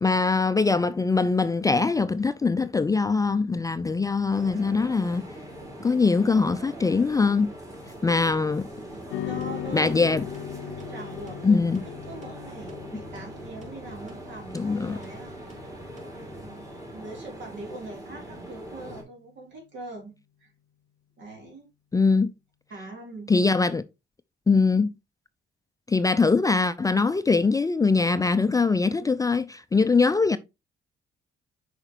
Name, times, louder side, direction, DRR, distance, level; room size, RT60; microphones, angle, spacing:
voice 1, 0.0-5.2 5.8-7.5 8.0-8.7 9.7-10.2 11.4-11.8 14.5-15.0 21.9-22.3 23.3-23.8 24.5-24.9 25.9-30.4, left 4 dB, 15° left, 0.4 m, -22 dB
sound 1, 4.3-19.0, right 1 dB, 15° right, 2.4 m, -42 dB
sound 2, 8.9-16.4, right 1 dB, 35° right, 3.4 m, -51 dB
sound 3, 9.1-17.6, left 12 dB, 75° left, 0.5 m, -39 dB
voice 2, 9.2-9.9 10.9-15.6 15.9-20.1 20.4-20.5 21.2-21.7 22.7-23.3, right 2 dB, 70° right, 3.0 m, -42 dB
6.6 x 5.0 x 2.9 m
cardioid pair, 90°, 20 cm